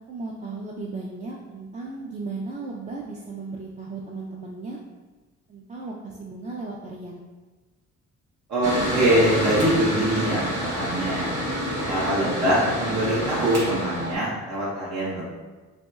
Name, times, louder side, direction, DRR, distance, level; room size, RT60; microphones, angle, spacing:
voice 1, 0.1-4.8 5.5-7.2, right 3 dB, 25° right, -2 dB, 0.4 m, -35 dB
voice 2, 8.5-11.3 11.9-15.3, right 1 dB, 70° right, -7 dB, 1.0 m, -23 dB
Mechanical fan, 8.6-14.1, right 1 dB, 55° right, 1.3 m, -28 dB
4.1 x 3.0 x 2.3 m, 1.3 s
cardioid pair, 90°, 30 cm